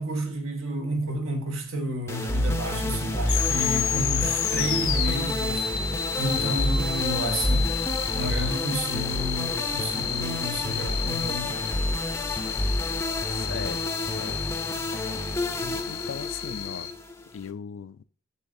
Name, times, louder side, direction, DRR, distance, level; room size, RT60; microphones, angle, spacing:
voice 1, 0.0-5.7 6.2-7.8 8.1-11.7, right 1 dB, 75° right, 1.4 m, -31 dB
sound 1, 2.1-17.5, left 1 dB, 10° left, 0.5 m, -29 dB
sound 2, 3.2-16.9, left 9 dB, 85° left, 0.8 m, -31 dB
voice 2, 13.3-14.5 15.6-16.9 17.3-18.0, left 7 dB, 65° left, 0.3 m, -38 dB
6.9 x 6.7 x 2.6 m
head